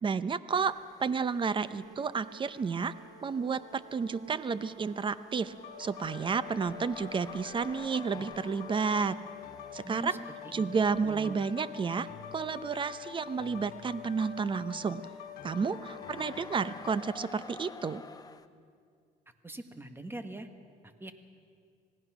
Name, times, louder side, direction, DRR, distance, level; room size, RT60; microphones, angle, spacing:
voice 1, 0.0-0.7 1.0-2.9 3.2-5.5 5.8-9.2 9.7-10.2 10.5-15.0 15.4-18.0, right 5 dB, 30° right, 15 dB, 0.7 m, -31 dB
sound 1, 0.5-2.1 2.4-18.5, left 4 dB, 20° left, 0.9 m, -53 dB
Brass instrument, 1.5-7.9, right 4 dB, 85° right, 2.4 m, -54 dB
sound 2, 5.6-17.0, left 8 dB, 70° left, 3.0 m, -45 dB
voice 2, 9.8-10.8 11.0-11.4 19.4-20.5 21.0-21.1, right 2 dB, 15° right, 8 dB, 1.5 m, -42 dB
26.5 x 18.0 x 6.1 m, 2.2 s
cardioid pair, 110°, 17 cm